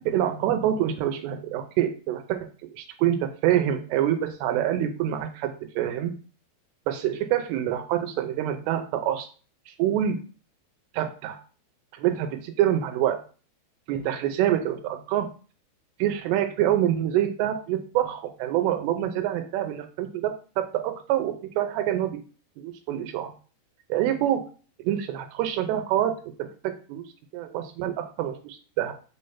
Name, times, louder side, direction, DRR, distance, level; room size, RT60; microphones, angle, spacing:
voice 1, 0.1-2.4 2.7-6.1 6.9-9.3 9.7-10.2 10.9-11.4 11.9-13.2 13.9-15.3 16.0-22.2 22.6-23.3 23.9-24.4 24.8-27.0 27.3-28.9, right 11 dB, 90° right, 5 dB, 2.8 m, -26 dB
6.0 x 3.3 x 5.5 m, 0.37 s
omnidirectional pair, 4.8 m